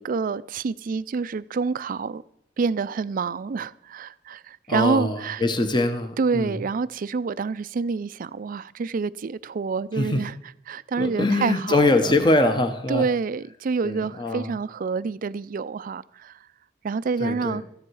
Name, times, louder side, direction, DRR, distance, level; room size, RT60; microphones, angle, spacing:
voice 1, 0.0-2.2 2.6-5.4 6.2-10.4 10.7-12.1 12.9-16.4 16.8-17.6, right 5 dB, 45° right, 0.4 m, -27 dB
voice 2, 4.7-6.6 10.0-10.2 11.0-13.1 13.8-14.5 17.2-17.6, left 2 dB, 25° left, 0.9 m, -23 dB
14.5 x 10.5 x 4.7 m
head